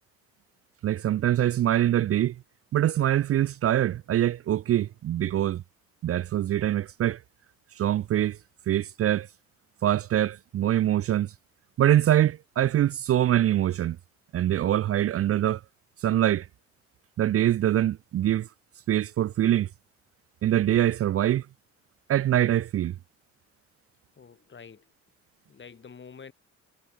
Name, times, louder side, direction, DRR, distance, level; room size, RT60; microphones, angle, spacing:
voice 1, 0.8-2.4 2.7-5.6 6.0-7.2 7.8-8.4 8.7-9.3 9.8-11.3 11.8-14.0 14.3-15.6 16.0-16.5 17.2-18.5 18.9-19.7 20.4-21.5 22.1-22.9, right 12 dB, 50° right, 0.5 m, -24 dB
voice 2, 24.2-24.8 25.5-26.3, left 6 dB, 40° left, 4.0 m, -47 dB
cardioid pair, 90°, 30 cm